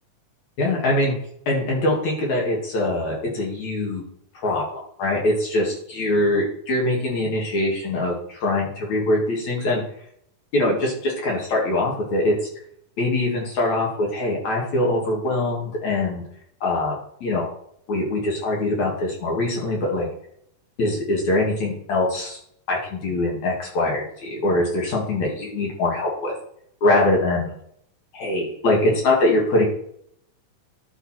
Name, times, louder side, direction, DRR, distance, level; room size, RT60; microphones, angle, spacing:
voice 1, 0.6-1.2 1.5-4.0 4.4-9.8 10.5-12.4 13.0-16.2 16.6-17.5 17.9-20.1 20.8-22.4 22.7-26.4 26.8-27.5 28.1-29.7, left 2 dB, 60° left, -2 dB, 3.6 m, -23 dB
11.5 x 5.6 x 4.5 m, 0.68 s
omnidirectional pair, 3.9 m